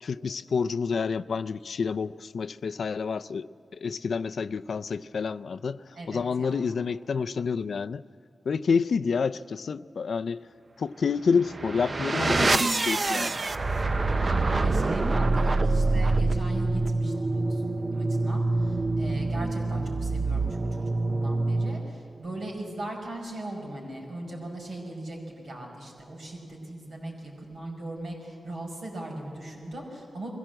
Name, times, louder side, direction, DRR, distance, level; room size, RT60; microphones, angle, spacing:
voice 1, 0.0-8.0 8.5-10.4 10.8-13.3, left 5 dB, 75° left, 13 dB, 0.4 m, -29 dB
voice 2, 6.0-6.7 14.2-17.6 17.9-30.3, right 1 dB, 75° right, -1 dB, 5.3 m, -39 dB
sound 1, 11.3-22.0, right 2 dB, 40° right, 0.6 m, -26 dB
22.5 x 16.0 x 7.7 m, 2.5 s
wide cardioid pair, 90°, 0 cm